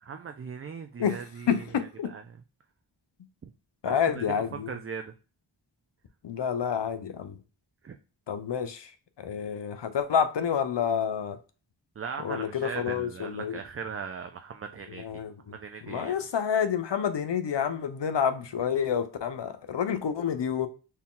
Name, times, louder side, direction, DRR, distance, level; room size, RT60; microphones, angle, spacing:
voice 1, 0.0-1.6 2.1-2.2 3.4-3.5 3.9-4.2 4.7-5.1 7.8-8.0 12.0-15.2 15.5-16.1, right 6 dB, 35° right, 0.4 m, -39 dB
voice 2, 1.5-2.1 3.8-4.8 6.2-7.4 8.3-11.4 12.2-13.6 14.9-20.7, left 7 dB, 70° left, 0.6 m, -29 dB
4.3 x 2.2 x 3.7 m
wide cardioid pair, 60°, 45 cm